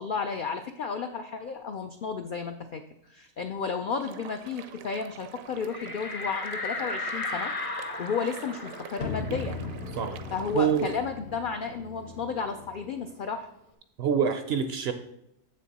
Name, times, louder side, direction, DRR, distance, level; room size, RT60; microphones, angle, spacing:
voice 1, 0.0-7.5 8.0-9.7 10.3-13.5, left 5 dB, 80° left, 6 dB, 0.4 m, -33 dB
sound 1, 4.0-11.0, right 8 dB, 80° right, 1.0 m, -46 dB
sound 2, 5.7-10.9 11.2-11.3 11.7-13.3, left 3 dB, 35° left, 0.6 m, -36 dB
sound 3, 9.0-13.0, left 3 dB, 60° left, 0.8 m, -38 dB
voice 2, 10.5-10.9 14.0-14.9, right 7 dB, 65° right, 8 dB, 0.6 m, -25 dB
7.2 x 6.5 x 4.1 m, 0.81 s
omnidirectional pair, 1.4 m